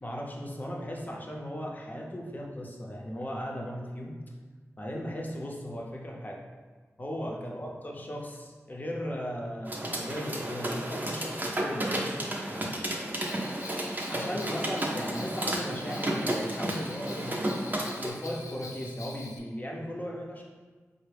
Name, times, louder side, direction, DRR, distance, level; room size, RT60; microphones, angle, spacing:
voice 1, 0.0-4.2 4.8-6.4 7.0-12.8 14.1-17.7 18.0-20.4, equal, 30° left, -2 dB, 0.7 m, -37 dB
sound 1, 9.7-18.1, right 1 dB, 35° right, 0.6 m, -32 dB
Bell, 13.2-19.4, left 3 dB, 85° left, 0.4 m, -46 dB
4.4 x 2.1 x 3.4 m, 1.4 s
cardioid pair, 45°, 5 cm